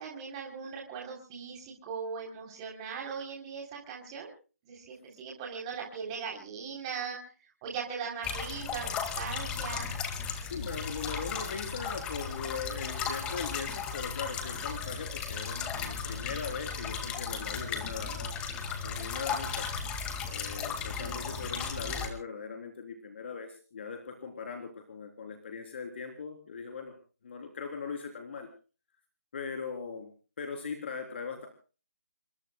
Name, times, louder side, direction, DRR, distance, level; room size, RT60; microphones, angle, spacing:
voice 1, 0.0-4.3 4.6-7.3 7.6-9.9 21.0-21.2, right 6 dB, 20° right, 0 dB, 3.5 m, -39 dB
sound 1, 8.2-22.1, left 6 dB, 10° left, 2.0 m, -35 dB
voice 2, 10.4-18.4 18.8-19.7 20.3-26.9 27.2-28.5 29.3-30.1 30.4-31.5, left 5 dB, 45° left, 3 dB, 3.6 m, -40 dB
27.5 x 22.5 x 2.3 m, 0.37 s
figure-of-eight pair, 160°, 8 cm